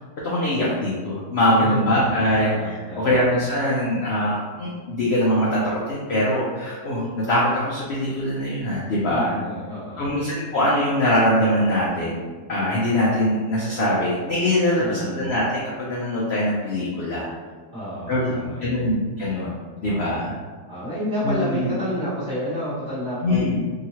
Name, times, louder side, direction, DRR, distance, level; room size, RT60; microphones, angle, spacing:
voice 1, 0.2-9.3 10.0-17.3 18.1-19.6 19.8-20.3 21.2-21.7 23.2-23.6, left 1 dB, 70° left, -6 dB, 0.6 m, -22 dB
voice 2, 1.6-2.1 2.4-3.3 9.1-10.2 14.8-15.3 17.7-18.9 19.8-20.1 20.7-23.7, equal, 15° right, -16 dB, 0.7 m, -30 dB
2.8 x 2.8 x 2.8 m, 1.4 s
omnidirectional pair, 1.8 m